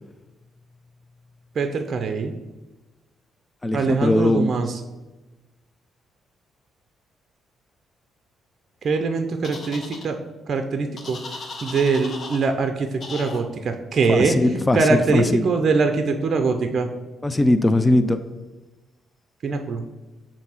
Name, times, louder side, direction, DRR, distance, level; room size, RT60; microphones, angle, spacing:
voice 1, 1.6-2.3 3.7-4.8 8.8-10.2 10.5-11.2 11.6-14.3 14.7-16.9 19.4-19.8, right 4 dB, 50° right, 6 dB, 0.5 m, -22 dB
voice 2, 3.6-4.6 14.1-14.8 15.1-15.4 17.2-18.2, left 2 dB, 15° left, 10 dB, 0.4 m, -20 dB
sound 1, 9.4-10.1 11.0-12.5 13.0-13.4, left 3 dB, 45° left, 0.9 m, -36 dB
7.2 x 2.7 x 5.6 m, 1.1 s
cardioid pair, 90°, 0 cm